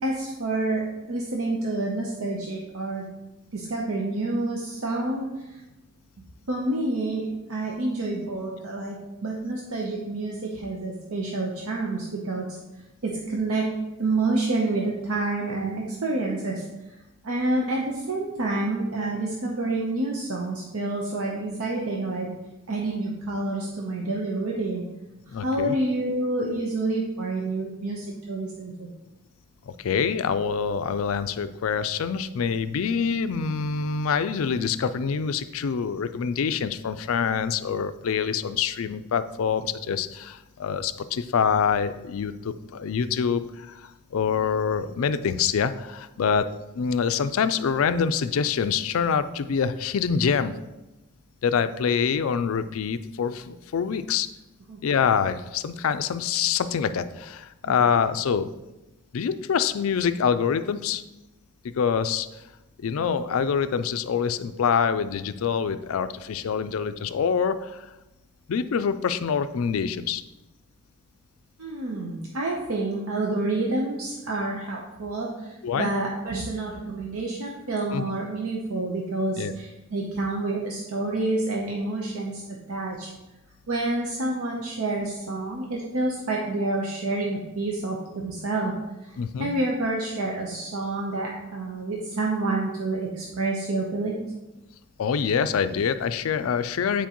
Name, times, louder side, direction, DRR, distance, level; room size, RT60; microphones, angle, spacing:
voice 1, 0.0-3.1 3.5-5.6 6.5-9.0 9.2-12.6 13.0-13.7 14.0-17.0 17.2-22.3 22.7-24.8 25.3-28.9 46.2-46.3 54.7-54.8 57.6-57.7 71.6-82.4 82.7-83.1 83.7-88.7 89.0-94.3, right 2 dB, 80° right, -1 dB, 0.8 m, -28 dB
voice 2, 25.3-25.7 29.7-46.5 46.7-50.5 51.4-54.3 54.8-58.5 59.1-61.0 61.8-62.3 62.8-67.9 68.5-70.2 75.6-75.9 77.9-78.0 79.4-79.5 89.2-89.5 95.0-97.1, left 6 dB, 70° left, 12 dB, 0.4 m, -25 dB
9.3 x 4.5 x 3.0 m, 1.0 s
head